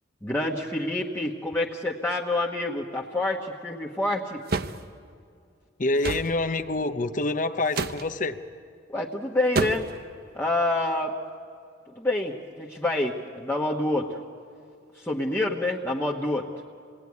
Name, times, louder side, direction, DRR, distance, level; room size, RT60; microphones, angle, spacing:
voice 1, 0.2-4.4 8.9-9.9 10.3-11.2 11.9-14.2 14.9-16.5, left 2 dB, 10° left, -3 dB, 1.2 m, -27 dB
sound 1, 4.5-4.8 6.0-6.3 7.7-8.0 9.5-10.0, right 3 dB, 50° right, 0.8 m, -27 dB
voice 2, 5.8-8.4, left 2 dB, 40° left, 8 dB, 0.8 m, -26 dB
27.0 x 19.5 x 9.6 m, 2.4 s
head